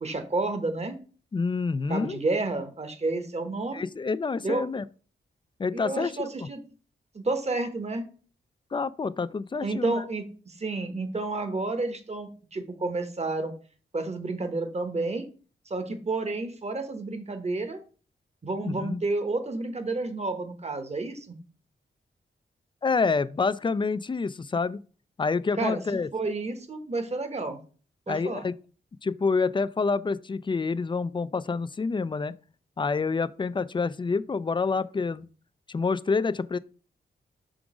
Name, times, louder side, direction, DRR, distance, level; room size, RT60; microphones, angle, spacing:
voice 1, 0.0-0.9 1.9-3.9 4.4-4.7 5.7-6.6 7.1-8.0 9.6-13.5 13.9-15.2 15.7-17.8 18.4-21.4 25.6-27.6 28.1-28.5, right 3 dB, 35° right, 1.0 m, -30 dB
voice 2, 1.3-2.2 3.7-4.8 5.6-6.5 8.7-10.0 18.6-19.0 22.8-24.8 25.2-26.1 28.1-28.5 29.0-32.3 32.8-35.3 35.7-36.6, left 4 dB, 25° left, 0.3 m, -27 dB
6.0 x 3.8 x 4.8 m
cardioid pair, 80°, 20 cm